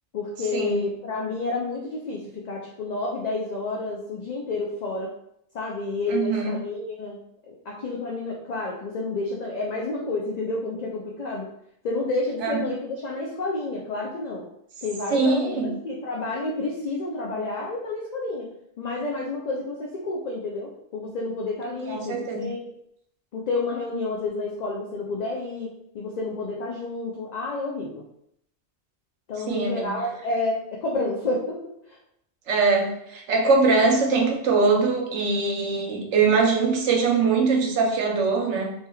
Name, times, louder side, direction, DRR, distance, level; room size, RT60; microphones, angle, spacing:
voice 1, 0.1-5.1 5.5-11.5 11.8-14.5 14.8-18.5 18.8-22.6 23.3-28.0 29.3-31.6 31.9-32.0, left 2 dB, 60° left, -2 dB, 0.4 m, -30 dB
voice 2, 6.1-6.6 12.4-12.6 15.1-15.7 21.9-22.5 29.5-30.0 32.5-38.7, right 4 dB, 85° right, 1 dB, 1.0 m, -22 dB
3.2 x 2.9 x 2.3 m, 0.73 s
omnidirectional pair, 1.2 m